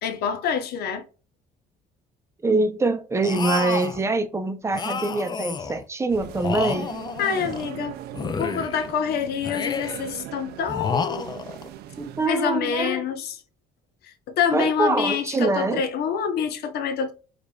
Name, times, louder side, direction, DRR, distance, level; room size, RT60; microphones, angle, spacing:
voice 1, 0.0-1.0 7.2-7.9 8.4-11.3 12.3-13.4 14.3-17.1, left 7 dB, 70° left, 0.8 m, -26 dB
voice 2, 2.4-6.9 12.0-13.1 14.5-15.8, right 3 dB, 15° right, 0.6 m, -24 dB
sound 1, 3.2-4.0 4.7-5.8 6.3-7.7 8.1-8.9 9.4-10.1 10.7-11.7, left 5 dB, 25° left, 0.4 m, -30 dB
sound 2, 6.1-12.3, right 12 dB, 70° right, 0.4 m, -40 dB
4.8 x 2.5 x 2.3 m
cardioid pair, 110°, 17 cm